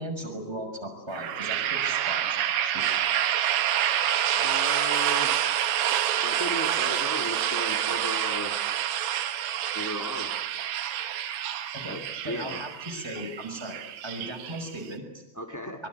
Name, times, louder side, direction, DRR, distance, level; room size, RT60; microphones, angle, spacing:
voice 1, 0.0-3.0 11.7-12.0 12.2-15.2 15.8-15.9, right 1 dB, 5° right, 1 dB, 6.2 m, -37 dB
sound 1, 1.1-14.9, right 11 dB, 80° right, 3.7 m, -28 dB
voice 2, 4.3-5.3 6.2-8.6 9.7-10.3 11.9-12.6 15.3-15.8, equal, 20° left, 3 dB, 0.4 m, -35 dB
24.5 x 24.5 x 9.8 m, 0.97 s
omnidirectional pair, 4.9 m